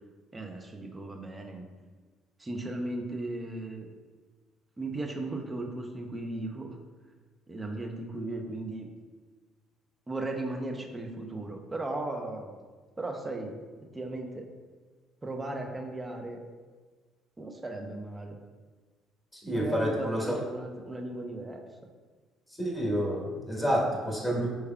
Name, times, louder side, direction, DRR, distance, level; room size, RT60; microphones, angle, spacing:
voice 1, 0.3-1.7 2.4-3.9 4.8-6.8 7.5-8.9 10.1-12.6 13.0-13.6 13.9-14.5 15.2-16.4 17.4-18.4 19.5-21.6, right 2 dB, 20° right, 3 dB, 0.6 m, -36 dB
voice 2, 19.4-20.4 22.6-24.5, equal, 5° left, -3 dB, 1.1 m, -29 dB
4.5 x 3.3 x 2.2 m, 1.4 s
figure-of-eight pair, 50°, 0 cm